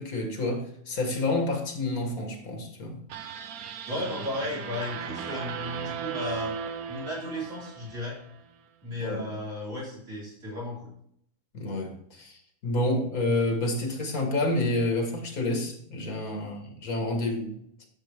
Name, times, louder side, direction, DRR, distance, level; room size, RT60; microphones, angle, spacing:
voice 1, 0.0-3.0 9.0-9.3 11.5-17.9, left 2 dB, 75° left, 2.1 m, -29 dB
sound 1, 3.1-8.4, right 7 dB, 90° right, 1.3 m, -37 dB
voice 2, 3.9-6.6 6.9-8.2 8.8-10.9, left 1 dB, 60° right, 4.5 m, -34 dB
10.5 x 7.2 x 3.5 m
omnidirectional pair, 1.5 m